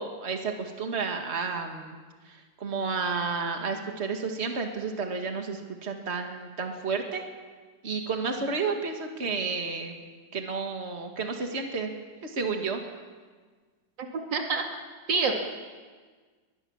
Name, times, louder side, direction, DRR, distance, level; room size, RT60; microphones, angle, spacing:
voice 1, 0.0-2.0 2.3-7.2 7.8-9.9 10.3-11.9 12.2-12.8, right 4 dB, 35° right, 4 dB, 2.2 m, -31 dB
voice 2, 14.0-14.6 15.1-15.3, right 4 dB, 70° right, 2 dB, 3.0 m, -27 dB
22.0 x 21.5 x 7.2 m, 1.5 s
omnidirectional pair, 2.0 m